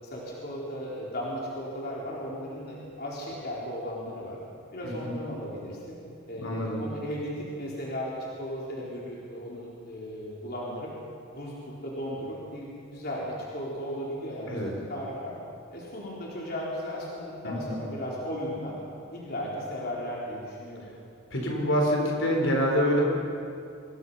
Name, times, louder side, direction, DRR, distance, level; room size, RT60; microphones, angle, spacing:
voice 1, 0.0-4.4 4.7-6.0 6.3-10.9 11.3-14.6 14.9-15.3 15.7-18.7 19.1-20.8, equal, 45° left, -5 dB, 4.2 m, -36 dB
voice 2, 4.8-5.1 6.4-6.8 14.5-14.7 17.4-17.7 21.3-23.0, equal, 60° left, 0 dB, 4.6 m, -26 dB
26.0 x 22.5 x 5.8 m, 2.5 s
head